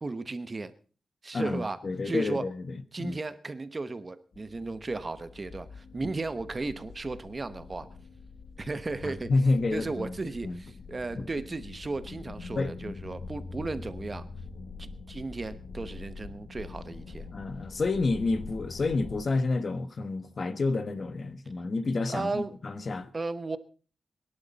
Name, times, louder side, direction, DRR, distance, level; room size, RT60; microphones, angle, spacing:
voice 1, 0.0-0.7 1.2-1.8 2.0-2.4 2.9-7.9 8.6-9.3 9.7-14.2 14.8-17.3 22.1-22.5 23.1-23.6, right 3 dB, 30° right, 1.0 m, -35 dB
voice 2, 1.3-3.2 6.0-6.1 9.0-10.1 10.4-10.6 11.2-11.3 12.6-12.8 17.3-23.1, left 3 dB, 45° left, 1.2 m, -29 dB
sound 1, 4.3-19.2, left 4 dB, 65° left, 1.4 m, -44 dB
22.5 x 11.5 x 4.1 m
wide cardioid pair, 115°, 0 cm